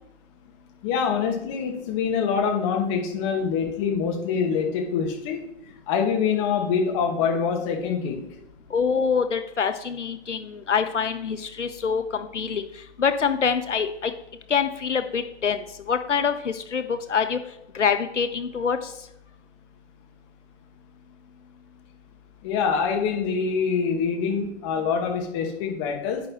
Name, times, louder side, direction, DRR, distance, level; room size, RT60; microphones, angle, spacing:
voice 1, 0.8-5.4 5.9-8.3 22.4-26.3, left 6 dB, 25° left, 3 dB, 1.8 m, -25 dB
voice 2, 8.7-12.6 13.0-14.1 14.5-15.6 15.9-17.4 17.7-18.8, left 6 dB, 80° left, 8 dB, 1.3 m, -25 dB
9.7 x 9.4 x 3.2 m, 0.81 s
hypercardioid pair, 145°, 36 cm